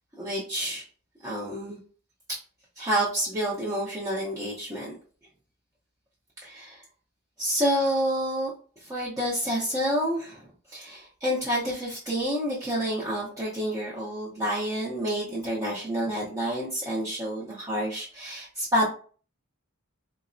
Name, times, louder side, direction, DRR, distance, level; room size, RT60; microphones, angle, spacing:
voice 1, 0.2-0.8 1.2-1.8 2.3-2.4 2.8-4.9 6.4-6.8 7.4-8.5 8.8-18.8, equal, 15° right, -6 dB, 0.6 m, -29 dB
3.8 x 2.0 x 2.5 m, 0.41 s
head